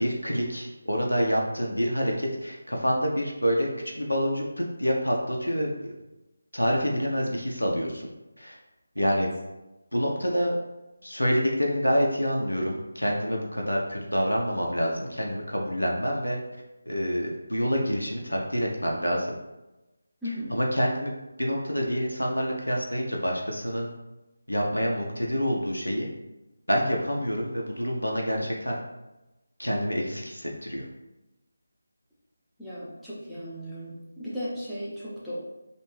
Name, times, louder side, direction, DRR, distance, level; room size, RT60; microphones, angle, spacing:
voice 1, 0.0-5.9 6.5-8.1 8.4-8.6 9.0-9.3 9.9-10.5 11.0-16.4 16.9-19.4 20.5-23.9 24.5-26.1 26.7-28.8 29.6-30.8, equal, 85° left, -1 dB, 0.5 m, -27 dB
voice 2, 20.2-20.6 32.6-35.4, equal, ahead, -13 dB, 0.6 m, -36 dB
2.5 x 2.2 x 3.1 m, 1.0 s
figure-of-eight pair, 160°, 0 cm